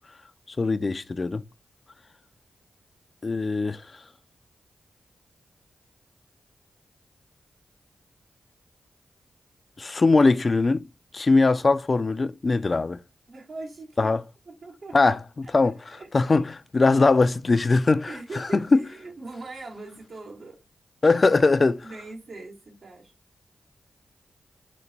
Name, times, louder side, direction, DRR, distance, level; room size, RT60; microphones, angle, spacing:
voice 1, 0.5-1.4 3.2-3.8 9.8-10.8 11.1-13.0 14.0-14.2 14.9-15.8 16.1-18.1 18.7-18.8 21.0-21.8, left 3 dB, 45° left, 0.4 m, -21 dB
voice 2, 13.3-14.1 14.5-15.0 15.4-15.5 15.9-16.1 18.1-20.6 21.8-23.1, right 3 dB, 65° right, 1.8 m, -41 dB
5.1 x 2.2 x 4.3 m
supercardioid pair, 45°, 0 cm